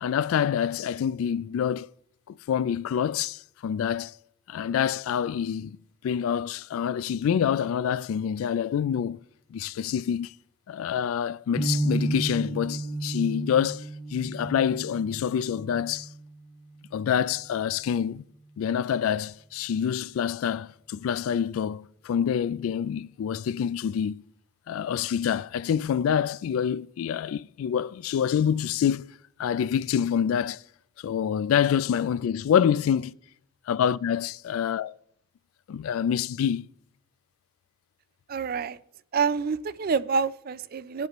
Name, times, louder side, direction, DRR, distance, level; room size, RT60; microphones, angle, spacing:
voice 1, 0.0-1.9 2.3-4.1 4.5-5.8 6.0-9.2 9.5-10.3 10.7-16.1 16.9-18.2 18.6-24.2 24.7-29.1 29.4-30.6 31.0-33.1 33.7-34.9 35.7-36.7, left 8 dB, 90° left, 0.3 m, -26 dB
sound 1, 11.6-17.6, right 2 dB, ahead, 1.3 m, -33 dB
voice 2, 38.3-38.8 39.1-41.1, right 5 dB, 45° right, 0.4 m, -27 dB
19.0 x 8.0 x 3.0 m
head